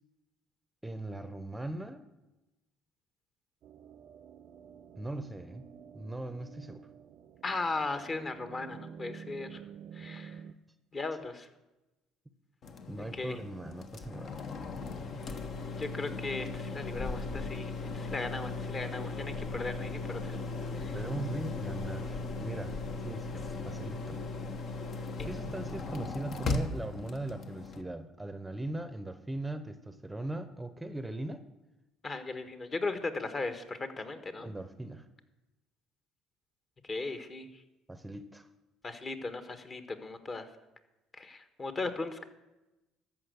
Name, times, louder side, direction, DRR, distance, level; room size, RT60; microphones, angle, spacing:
voice 1, 0.8-2.0 5.0-5.6 5.9-6.9 12.9-14.4 20.9-24.2 25.0-31.4 34.4-35.1 37.9-38.5, right 2 dB, 10° right, 11 dB, 0.8 m, -40 dB
sound 1, 3.6-10.5, right 7 dB, 60° right, 0.6 m, -50 dB
voice 2, 7.4-9.6 9.9-10.4 10.9-11.5 13.0-13.4 15.8-20.4 20.7-21.0 25.2-25.3 32.0-34.5 36.8-37.5 38.8-40.5 41.2-42.2, left 3 dB, 35° left, 9 dB, 1.4 m, -37 dB
sound 2, 12.6-27.8, left 3 dB, 55° left, 1.1 m, -37 dB
13.5 x 5.3 x 8.1 m, 1.0 s
supercardioid pair, 80°, 0 cm